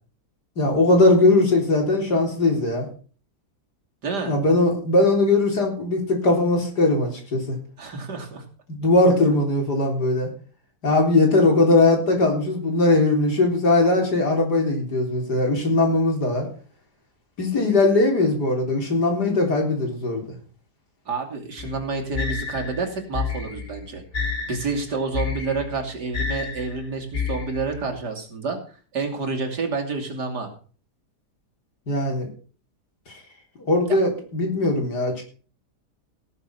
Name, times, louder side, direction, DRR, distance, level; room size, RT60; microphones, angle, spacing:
voice 1, 0.6-2.9 4.3-7.6 8.7-10.3 10.8-16.5 17.4-20.2 31.9-32.3 33.1-33.2 33.6-35.2, left 2 dB, 75° left, 2 dB, 4.3 m, -20 dB
voice 2, 4.0-4.4 7.8-8.4 21.1-24.0 24.5-28.6 28.9-30.5 33.9-34.0, right 4 dB, 85° right, 2 dB, 3.4 m, -29 dB
sound 1, 21.6-27.9, left 5 dB, 35° left, 2.1 m, -30 dB
17.5 x 7.4 x 5.9 m, 0.40 s
omnidirectional pair, 1.8 m